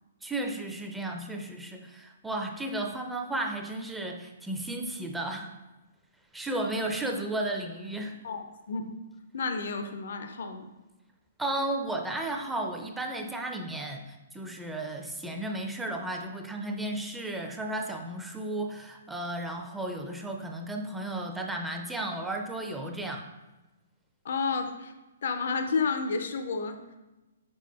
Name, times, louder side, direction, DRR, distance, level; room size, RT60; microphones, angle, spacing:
voice 1, 0.2-5.5 6.3-8.2 11.4-23.3, right 1 dB, 5° right, 2 dB, 0.4 m, -34 dB
voice 2, 8.2-9.0 9.3-10.7 24.2-24.9 25.2-27.0, left 4 dB, 60° left, 7 dB, 0.4 m, -31 dB
5.2 x 4.6 x 2.2 m, 1.1 s
figure-of-eight pair, 120°, 0 cm